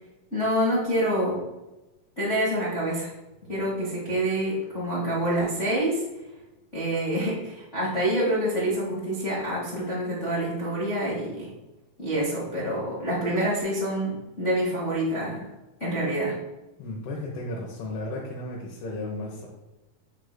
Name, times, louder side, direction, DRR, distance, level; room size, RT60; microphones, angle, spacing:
voice 1, 0.3-1.4 2.2-3.1 3.5-6.0 6.7-11.5 12.0-15.5 15.8-16.4, right 1 dB, 55° left, -7 dB, 0.7 m, -27 dB
voice 2, 16.8-19.5, left 1 dB, 90° left, -3 dB, 3.1 m, -34 dB
9.9 x 6.5 x 2.2 m, 1.0 s
omnidirectional pair, 4.3 m